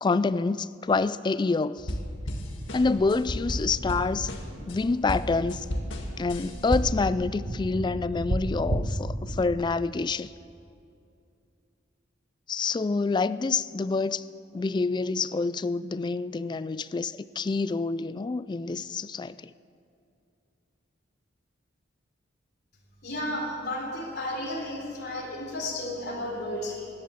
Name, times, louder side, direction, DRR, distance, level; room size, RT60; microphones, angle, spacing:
voice 1, 0.0-1.9 2.7-4.3 4.6-5.7 6.2-10.3 12.5-14.2 14.5-19.5, left 4 dB, 25° left, 0.3 m, -27 dB
sound 1, 1.8-4.8 5.1-7.1, equal, 80° left, 1.8 m, -33 dB
sound 2, 2.6-9.6, right 1 dB, 55° right, 1.2 m, -35 dB
voice 2, 23.0-26.9, left 1 dB, 55° left, 3.9 m, -33 dB
16.0 x 11.0 x 7.3 m
head